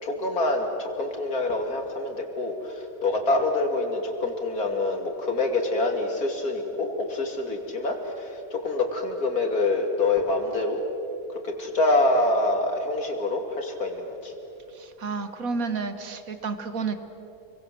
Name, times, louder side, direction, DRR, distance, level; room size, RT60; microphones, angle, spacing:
voice 1, 0.0-10.8 11.3-14.3, left 2 dB, 70° left, 3 dB, 3.4 m, -26 dB
voice 2, 14.7-17.0, right 4 dB, 65° right, 9 dB, 2.0 m, -31 dB
29.0 x 23.0 x 7.8 m, 2.9 s
omnidirectional pair, 1.6 m